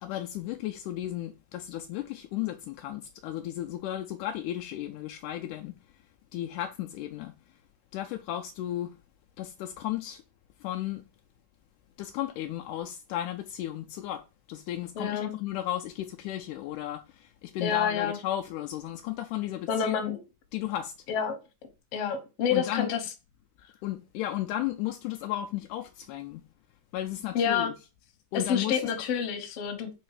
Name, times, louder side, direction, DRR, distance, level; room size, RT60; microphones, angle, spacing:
voice 1, 0.0-6.0 6.3-7.4 7.9-9.0 9.4-10.2 10.6-11.0 12.0-20.2 20.5-20.9 22.5-22.9 23.8-26.5 26.9-27.7 28.3-28.9, left 13 dB, 85° left, 1.8 m, -34 dB
voice 2, 14.9-15.3 17.6-18.2 19.7-20.1 21.1-21.4 21.9-23.0 27.3-27.7 28.3-29.9, left 7 dB, 60° left, 1.6 m, -28 dB
5.1 x 3.9 x 4.8 m
omnidirectional pair, 4.1 m